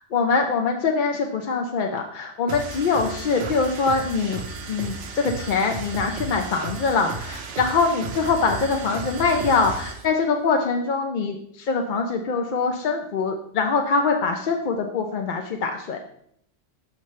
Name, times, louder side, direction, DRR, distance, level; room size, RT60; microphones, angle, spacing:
voice 1, 0.1-4.4 4.7-16.0, left 4 dB, 55° left, 3 dB, 0.6 m, -23 dB
sound 1, 2.5-10.1, right 3 dB, 75° right, 1.0 m, -34 dB
7.1 x 5.5 x 3.1 m, 0.72 s
omnidirectional pair, 1.2 m